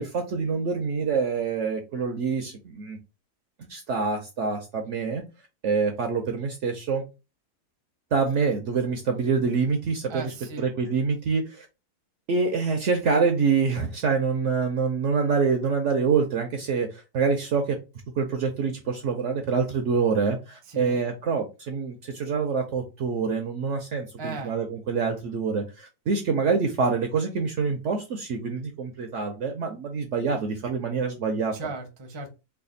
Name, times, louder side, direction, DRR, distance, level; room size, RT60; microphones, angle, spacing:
voice 1, 0.0-3.0 3.7-5.2 5.6-7.0 8.1-11.7 12.3-17.8 18.2-31.5, right 5 dB, 65° right, 4 dB, 0.7 m, -26 dB
voice 2, 10.1-10.7 20.7-21.0 24.2-24.6 31.5-32.3, right 3 dB, 30° right, 3 dB, 0.5 m, -36 dB
3.3 x 2.4 x 3.8 m, 0.28 s
omnidirectional pair, 1.6 m